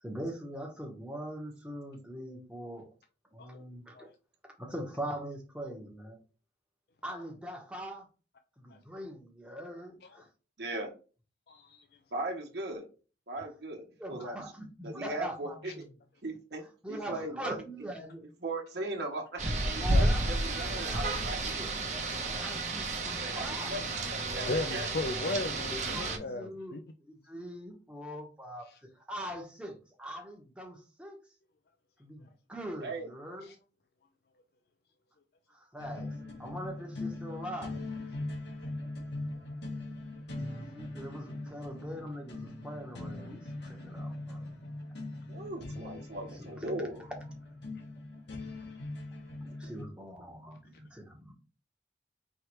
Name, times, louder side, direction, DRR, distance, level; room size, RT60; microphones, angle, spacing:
voice 1, 0.0-2.9 3.3-4.1 4.6-6.2 7.0-8.0 8.6-10.3 14.0-15.9 16.8-18.2 19.8-21.7 22.2-24.5 25.7-31.2 32.0-33.5 35.5-36.1 36.4-37.8 40.4-44.5 46.4-46.6 47.1-47.6 49.4-51.3, equal, 5° right, 1.0 m, -42 dB
voice 2, 10.6-10.9 12.1-12.8 13.3-13.8 14.1-14.4 14.8-15.8 16.2-16.6 16.9-17.6 18.4-21.6 23.2-23.8 24.1-24.9 32.8-33.1 45.3-47.0 49.6-49.7, right 2 dB, 70° right, 0.9 m, -38 dB
voice 3, 11.5-11.8 15.6-15.7 24.5-26.8 28.7-28.8 33.5-33.6 43.6-43.7, left 2 dB, 60° left, 0.4 m, -36 dB
Rain, 19.4-26.2, right 2 dB, 45° right, 0.9 m, -31 dB
sound 1, 35.8-49.9, left 2 dB, 80° left, 1.2 m, -41 dB
4.6 x 3.2 x 3.1 m
head